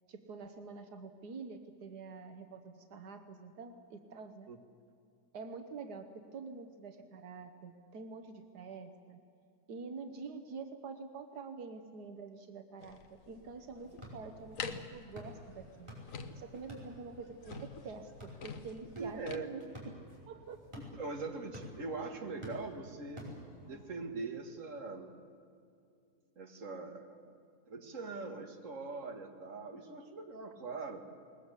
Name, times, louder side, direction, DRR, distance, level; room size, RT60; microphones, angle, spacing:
voice 1, 0.1-4.5 5.3-9.2 9.7-13.0 13.3-15.9 16.4-20.0 20.3-20.6, right 4 dB, 85° right, 7 dB, 1.7 m, -47 dB
sound 1, 12.8-19.4, left 5 dB, 60° left, 1.5 m, -47 dB
sound 2, 13.7-23.9, left 1 dB, 15° right, 5.3 m, -52 dB
voice 2, 19.0-19.5 20.8-23.2 23.6-25.1 26.4-27.4 27.7-31.0, right 3 dB, 50° right, 4 dB, 2.3 m, -42 dB
20.5 x 20.5 x 8.3 m, 2.4 s
omnidirectional pair, 1.7 m